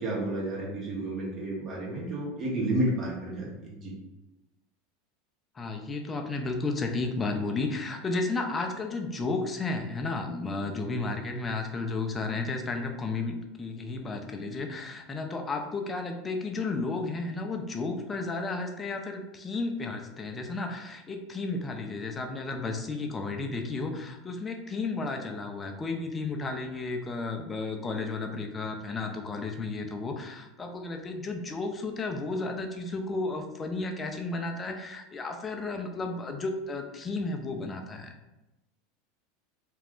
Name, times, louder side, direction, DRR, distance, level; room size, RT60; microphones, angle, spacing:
voice 1, 0.0-4.0, right 1 dB, 40° right, -4 dB, 0.9 m, -31 dB
voice 2, 5.5-38.1, left 3 dB, 25° left, 4 dB, 0.5 m, -33 dB
2.4 x 2.2 x 3.5 m, 1.0 s
hypercardioid pair, 90°, 0 cm